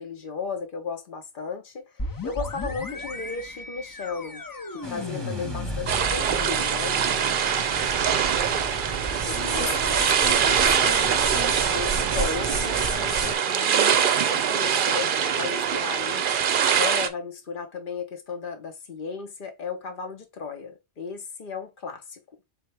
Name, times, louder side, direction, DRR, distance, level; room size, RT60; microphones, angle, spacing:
voice 1, 0.0-4.4 4.7-7.0 9.3-10.0 11.7-22.2, left 5 dB, 50° left, 1.1 m, -35 dB
sound 1, 2.0-11.6, left 1 dB, 35° left, 0.3 m, -37 dB
sound 2, 4.8-13.3, right 3 dB, 25° right, 0.9 m, -33 dB
sound 3, 5.9-17.1, right 8 dB, 55° right, 0.7 m, -23 dB
voice 2, 9.3-11.6, left 6 dB, 85° left, 1.5 m, -36 dB
4.3 x 3.6 x 3.4 m
omnidirectional pair, 1.1 m